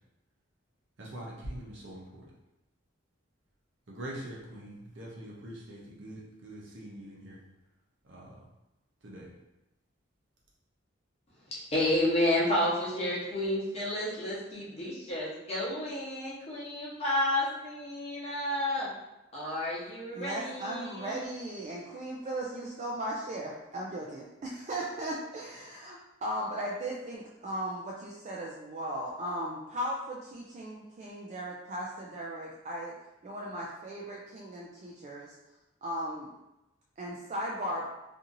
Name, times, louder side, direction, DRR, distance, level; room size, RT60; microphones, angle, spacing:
voice 1, 1.0-2.3 3.9-7.4 8.0-8.5 9.0-9.3, right 1 dB, 65° right, -4 dB, 0.7 m, -43 dB
voice 2, 11.7-18.9 19.3-21.2, left 1 dB, 30° left, -7 dB, 0.9 m, -31 dB
voice 3, 20.1-32.9 33.2-35.3 35.8-36.3 37.0-37.9, right 1 dB, 35° right, -3 dB, 0.3 m, -37 dB
2.8 x 2.6 x 2.5 m, 0.95 s
head